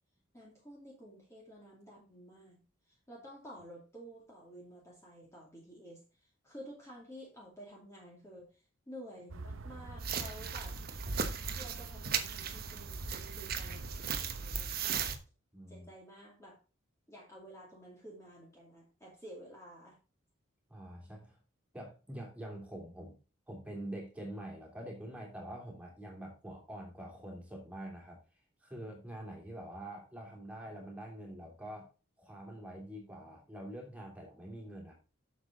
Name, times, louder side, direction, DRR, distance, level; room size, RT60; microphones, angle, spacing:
voice 1, 0.3-10.8 11.6-15.0 15.7-16.6 17.1-20.0, equal, 15° left, -4 dB, 2.4 m, -52 dB
sound 1, 9.3-14.5, right 3 dB, 70° right, 0.7 m, -46 dB
sound 2, 10.0-15.2, right 6 dB, 45° right, 1.1 m, -37 dB
voice 2, 15.5-15.9 20.7-21.4 21.7-23.2 23.5-28.2 28.6-31.9 32.2-34.9, right 1 dB, 5° right, -1 dB, 3.1 m, -45 dB
7.9 x 7.2 x 3.8 m, 0.32 s
head